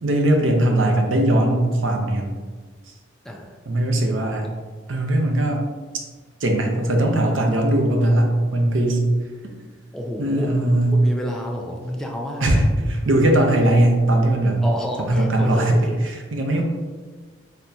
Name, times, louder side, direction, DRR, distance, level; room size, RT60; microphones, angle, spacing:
voice 1, 0.0-2.3 3.7-4.5 4.9-5.7 6.4-9.1 9.4-9.5 10.2-11.0 12.4-14.6 15.0-16.6, right 1 dB, 75° right, 2 dB, 0.6 m, -19 dB
voice 2, 3.2-3.6 9.9-10.5 10.9-12.6 14.6-16.0, equal, 5° left, 0 dB, 0.4 m, -29 dB
4.3 x 3.3 x 2.7 m, 1.4 s
head